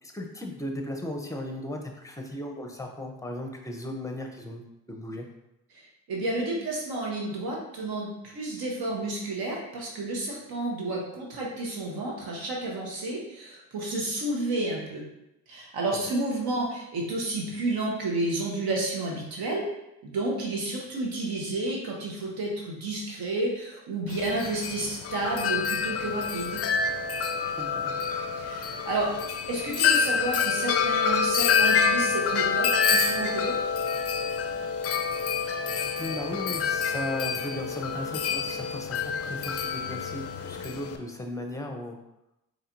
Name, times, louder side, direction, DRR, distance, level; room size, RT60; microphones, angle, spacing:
voice 1, 0.0-4.6 4.9-5.3 15.9-16.0 27.6-28.0 36.0-42.0, left 1 dB, 10° left, 2 dB, 0.7 m, -36 dB
voice 2, 5.7-15.0 15.5-19.6 20.0-26.6 28.4-29.1 29.5-33.6, right 2 dB, 65° right, -2 dB, 1.2 m, -31 dB
Wind chime, 24.1-41.0, left 6 dB, 40° left, 0.4 m, -27 dB
4.1 x 3.3 x 2.6 m, 0.90 s
supercardioid pair, 55°, 39 cm